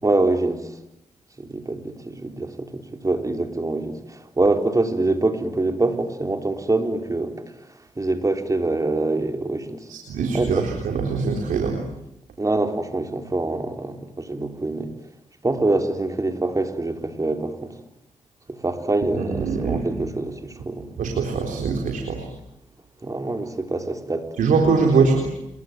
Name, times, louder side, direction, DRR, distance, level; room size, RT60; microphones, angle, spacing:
voice 1, 0.0-0.7 1.4-7.3 8.0-9.8 10.3-10.7 12.4-14.9 15.4-17.8 18.5-20.9 23.0-24.3 25.0-25.1, right 2 dB, 25° right, 6 dB, 4.0 m, -25 dB
voice 2, 9.9-11.8 19.2-19.9 21.0-22.3 24.4-25.3, right 4 dB, 90° right, 2 dB, 4.0 m, -22 dB
27.5 x 23.5 x 9.4 m, 0.84 s
cardioid pair, 75°, 13 cm